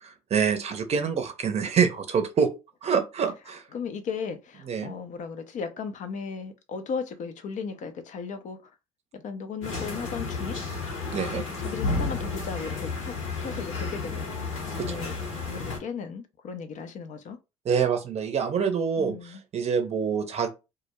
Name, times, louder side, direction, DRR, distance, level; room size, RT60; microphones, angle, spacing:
voice 1, 0.0-2.5 2.8-3.6 4.7-4.9 11.1-11.4 14.8-15.0 17.7-20.5, right 6 dB, 40° right, 0.6 m, -26 dB
voice 2, 3.5-8.7 9.1-10.6 11.2-13.1 13.4-14.3 14.7-15.1 15.5-17.4 19.0-19.4, left 5 dB, 45° left, 0.5 m, -36 dB
sound 1, 9.6-15.8, left 3 dB, 75° left, 1.0 m, -32 dB
2.3 x 2.0 x 2.9 m
hypercardioid pair, 55°, 17 cm